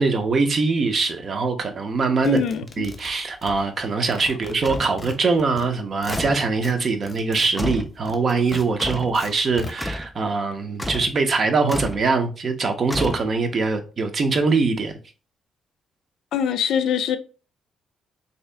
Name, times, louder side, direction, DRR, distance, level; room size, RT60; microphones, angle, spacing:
voice 1, 0.0-2.4 2.8-15.0, right 4 dB, 45° right, 0.6 m, -22 dB
voice 2, 2.2-2.9 16.3-17.2, left 8 dB, 80° left, 0.3 m, -23 dB
sound 1, 2.2-3.9 4.1-5.7 5.9-6.7 7.0-9.7, left 3 dB, 30° left, 0.7 m, -38 dB
sound 2, 4.6-5.0 6.1-6.5 7.6-8.0 8.8-9.2 9.8-10.1 10.8-11.2 11.7-12.1 12.9-13.5, left 1 dB, 5° left, 0.3 m, -30 dB
3.4 x 2.8 x 3.3 m
cardioid pair, 95°, 0 cm